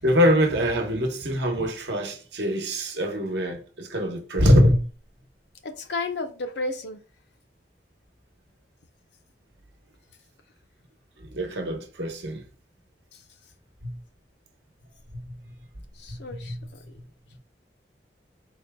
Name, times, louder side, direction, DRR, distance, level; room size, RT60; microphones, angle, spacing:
voice 1, 0.0-4.8 11.3-12.4 13.8-13.9 15.1-15.4 16.1-16.6, equal, 75° right, 1.0 m, -23 dB
voice 2, 5.6-7.0 16.0-16.5, left 2 dB, 75° left, 0.6 m, -32 dB
4.2 x 2.2 x 3.4 m
head